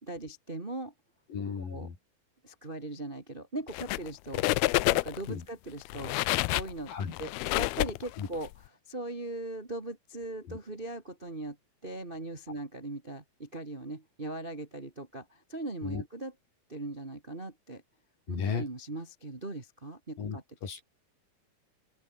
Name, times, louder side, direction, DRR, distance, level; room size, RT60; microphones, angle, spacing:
voice 1, 0.0-0.9 1.6-1.9 2.4-4.4 4.9-6.1 6.5-6.9 7.2-8.5 8.9-11.6 11.8-16.3 16.7-17.8 18.3-20.4, right 2 dB, 20° right, 1.6 m, -39 dB
voice 2, 1.3-1.9 5.3-5.4 6.9-7.1 8.2-8.3 10.5-10.6 15.8-16.0 18.3-18.7 20.2-20.8, left 6 dB, 60° left, 5.7 m, -35 dB
sound 1, 3.7-4.1 4.3-5.3 5.8-8.5, left 20 dB, 85° left, 2.5 m, -28 dB
open air
omnidirectional pair, 4.5 m